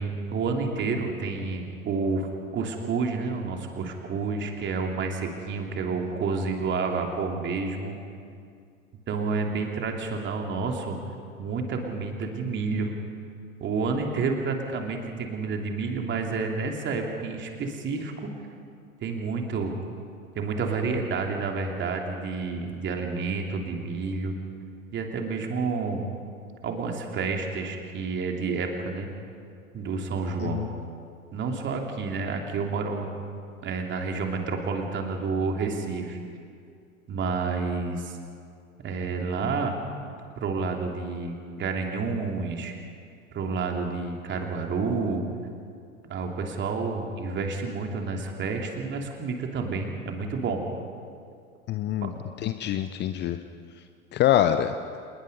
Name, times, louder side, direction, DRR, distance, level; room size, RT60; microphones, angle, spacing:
voice 1, 0.0-8.0 9.1-11.0 11.4-12.9 13.6-18.3 19.0-19.7 20.3-24.3 24.9-26.0 26.6-29.1 29.7-30.7 31.3-33.1 33.6-36.2 37.1-38.2 38.8-39.8 40.4-42.7 43.3-45.2 46.1-50.6 52.0-52.1, right 4 dB, 25° right, 2 dB, 3.0 m, -29 dB
voice 2, 51.7-52.1 52.4-53.4 54.1-54.7, left 11 dB, 25° left, 10 dB, 0.7 m, -24 dB
27.0 x 20.5 x 5.5 m, 2.3 s
figure-of-eight pair, 95°, 42 cm